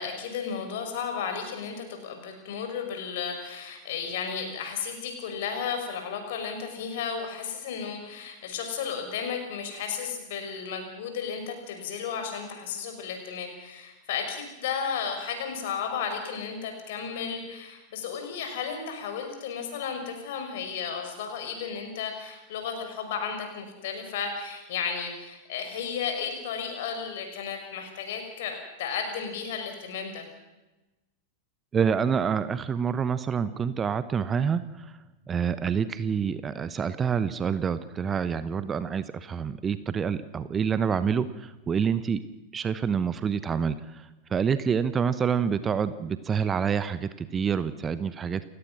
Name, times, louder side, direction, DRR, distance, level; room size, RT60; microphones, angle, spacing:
voice 1, 0.0-30.3, left 6 dB, 55° left, 5 dB, 5.6 m, -33 dB
voice 2, 31.7-34.9 35.3-42.2 42.5-48.5, right 7 dB, 20° right, 14 dB, 1.0 m, -27 dB
29.5 x 17.0 x 6.3 m, 1.0 s
figure-of-eight pair, 90°, 0 cm